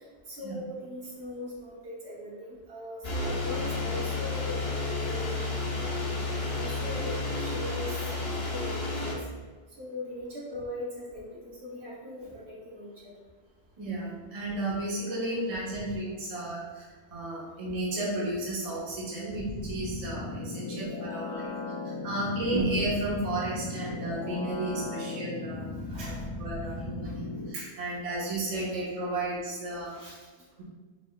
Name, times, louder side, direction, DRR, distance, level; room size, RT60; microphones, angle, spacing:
voice 1, 0.3-5.4 6.5-8.0 8.5-9.2 9.8-13.1 25.9-26.2 27.0-27.1 29.9-30.2, left 1 dB, 70° right, -6 dB, 1.2 m, -40 dB
sound 1, 3.0-9.1, left 3 dB, 65° left, 1.1 m, -31 dB
voice 2, 13.8-21.6 21.8-29.9, right 1 dB, 35° right, -6 dB, 0.9 m, -33 dB
sound 2, 19.3-27.5, left 2 dB, 45° left, 0.4 m, -37 dB
3.8 x 3.6 x 2.2 m, 1.4 s
omnidirectional pair, 1.1 m